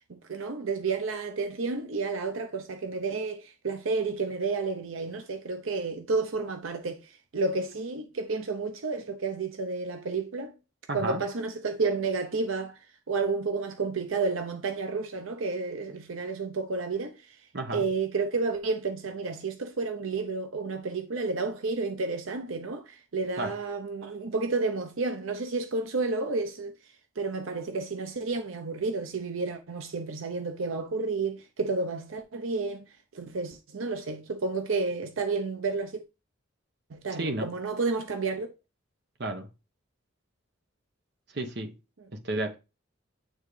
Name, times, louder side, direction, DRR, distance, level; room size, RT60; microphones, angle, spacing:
voice 1, 0.1-10.5 10.9-12.8 13.1-17.4 17.7-26.7 27.2-32.9 33.1-36.0 36.9-38.5, right 3 dB, 80° right, 0.7 m, -31 dB
voice 2, 10.9-11.2 17.5-17.8 23.4-23.5 37.2-37.5 39.2-39.5 41.3-41.7 42.2-42.6, right 2 dB, 55° right, 1.0 m, -31 dB
8.9 x 3.7 x 3.2 m
head